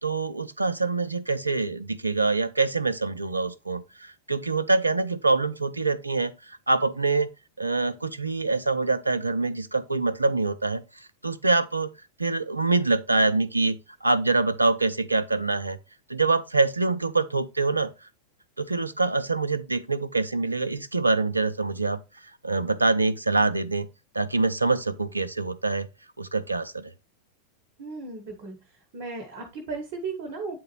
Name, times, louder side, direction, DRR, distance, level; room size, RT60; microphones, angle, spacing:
voice 1, 0.0-7.3 7.6-10.8 11.2-11.9 12.2-15.8 16.1-17.9 18.6-22.0 22.4-23.9 24.1-25.9 26.2-26.9, right 3 dB, 80° right, 0.4 m, -25 dB
voice 2, 27.8-28.6 28.9-30.6, right 4 dB, 45° right, 0.9 m, -35 dB
8.5 x 3.8 x 3.0 m
figure-of-eight pair, 90°, 0 cm